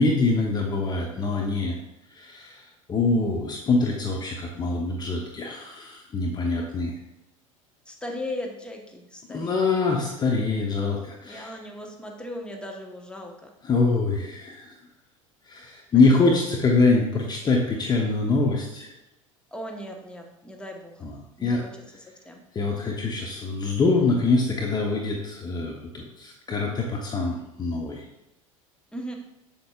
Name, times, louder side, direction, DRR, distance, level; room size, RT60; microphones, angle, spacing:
voice 1, 0.0-1.8 2.1-6.9 9.3-11.6 13.6-14.7 15.5-18.9 21.0-21.1 21.4-21.6 22.5-28.0, left 3 dB, 25° left, 0 dB, 1.0 m, -24 dB
voice 2, 7.9-9.7 11.2-13.5 15.9-16.2 19.5-20.9 21.4-21.7 22.2-22.4 28.9-29.2, left 1 dB, 5° left, 2 dB, 1.3 m, -37 dB
7.7 x 7.1 x 2.5 m, 0.90 s
figure-of-eight pair, 75°, 17 cm